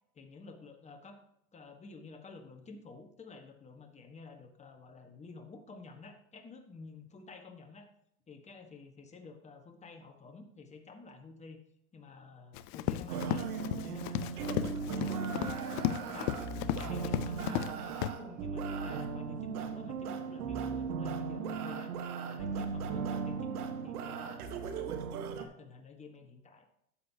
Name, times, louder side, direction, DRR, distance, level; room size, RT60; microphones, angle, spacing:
voice 1, 0.1-1.2 1.5-7.9 8.3-11.6 11.9-13.5 13.7-15.5 16.1-21.9 22.3-24.9 25.3-26.7, left 3 dB, 15° left, 5 dB, 1.4 m, -51 dB
Run, 12.5-17.7 18.0-18.1, left 13 dB, 30° left, 0.4 m, -35 dB
sound 1, 13.1-25.4, right 5 dB, 75° right, 1.5 m, -37 dB
13.0 x 7.6 x 2.9 m, 0.75 s
hypercardioid pair, 120°, 45 cm